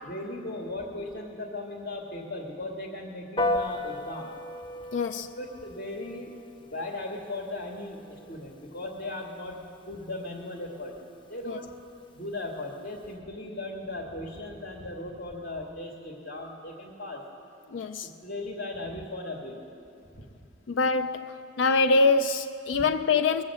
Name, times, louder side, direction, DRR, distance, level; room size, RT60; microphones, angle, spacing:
voice 1, 0.0-4.4 5.4-6.3 6.7-9.6 9.9-11.0 11.3-11.7 12.1-17.2 18.0-19.7 20.1-20.3 22.8-22.9, left 2 dB, 55° left, 1 dB, 1.5 m, -37 dB
Piano, 3.4-13.1, left 1 dB, 25° left, 0.7 m, -37 dB
voice 2, 4.9-5.3 11.5-11.6 17.7-18.1 20.7-21.2 21.6-23.4, left 3 dB, 80° left, 9 dB, 0.4 m, -24 dB
20.5 x 7.2 x 7.5 m, 2.5 s
head